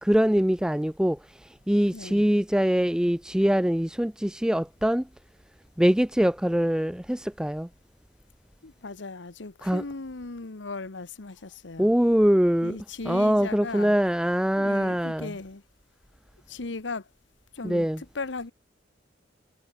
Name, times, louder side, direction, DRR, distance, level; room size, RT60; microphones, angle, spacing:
voice 1, 0.0-5.1 5.8-7.7 9.6-9.8 11.8-12.8 13.0-15.3 17.6-18.0, equal, 5° right, 0.5 m, -23 dB
voice 2, 1.9-2.2 8.6-11.9 12.6-13.9 14.6-15.6 16.5-17.1 17.5-18.5, left 3 dB, 85° left, 1.1 m, -37 dB
head